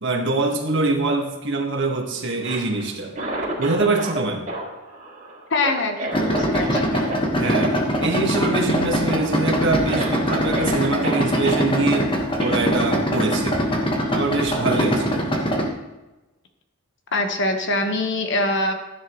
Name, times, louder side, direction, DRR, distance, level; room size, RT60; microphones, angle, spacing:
voice 1, 0.0-3.2 3.6-4.4 7.3-12.1 12.4-13.6 14.1-15.4, right 3 dB, 60° right, 2 dB, 1.7 m, -24 dB
Cough, 2.3-4.2 4.5-7.2 7.4-7.7 8.0-8.2 8.5-9.0 9.5-9.6 9.9-11.6 12.4-12.6, right 1 dB, 40° right, 3.7 m, -31 dB
voice 2, 5.5-6.9 17.1-18.7, left 2 dB, 60° left, 5 dB, 1.3 m, -23 dB
Idling, 6.1-15.7, equal, 25° left, 1.4 m, -22 dB
15.0 x 10.0 x 3.1 m, 1.1 s
head